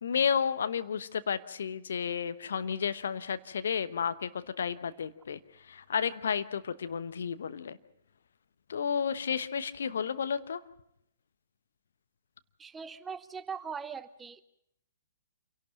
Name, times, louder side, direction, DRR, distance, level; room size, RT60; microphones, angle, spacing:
voice 1, 0.0-5.4 5.6-7.8 8.7-10.6, left 7 dB, 60° left, 14 dB, 0.9 m, -32 dB
voice 2, 12.6-14.4, right 6 dB, 10° right, 14 dB, 0.8 m, -40 dB
27.5 x 12.0 x 9.3 m, 0.78 s
figure-of-eight pair, 120°, 0 cm